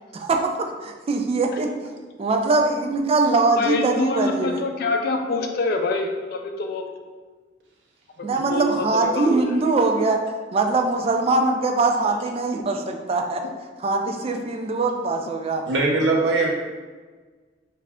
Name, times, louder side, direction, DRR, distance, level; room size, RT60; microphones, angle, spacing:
voice 1, 0.1-1.7 2.2-4.6 8.2-10.2 10.5-13.4 13.8-15.6, right 3 dB, 35° right, 4 dB, 0.3 m, -22 dB
voice 2, 3.5-6.8 8.2-9.6 10.7-10.8 12.0-12.2 13.4-13.5, left 3 dB, 55° left, 4 dB, 0.4 m, -26 dB
voice 3, 15.7-16.5, right 3 dB, 75° right, -1 dB, 0.7 m, -20 dB
3.2 x 2.4 x 3.5 m, 1.4 s
head